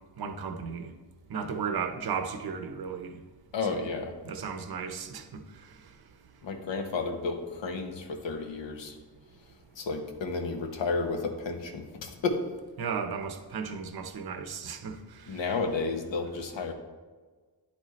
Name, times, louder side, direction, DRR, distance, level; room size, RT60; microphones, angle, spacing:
voice 1, 0.2-0.9 1.3-3.2 4.2-5.7 12.8-15.4, right 6 dB, 55° right, 0.8 m, -35 dB
voice 2, 3.5-4.1 6.4-9.0 9.7-12.5 15.3-16.7, left 4 dB, 70° left, 1.0 m, -32 dB
10.0 x 4.2 x 3.1 m
cardioid pair, 55°, 46 cm